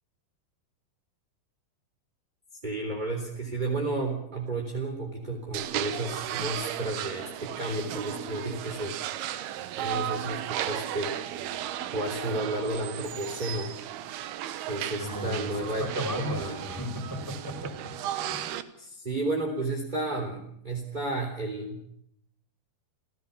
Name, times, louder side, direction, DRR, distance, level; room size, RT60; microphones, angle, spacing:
voice 1, 2.6-8.9 9.8-11.4 11.9-13.7 14.6-16.7 18.8-21.9, right 2 dB, 10° right, 1 dB, 3.2 m, -32 dB
sound 1, 5.5-18.6, right 12 dB, 80° right, 3.1 m, -35 dB
voice 2, 15.0-18.4, equal, 5° left, 4 dB, 4.8 m, -35 dB
28.5 x 17.0 x 7.2 m, 0.73 s
omnidirectional pair, 4.6 m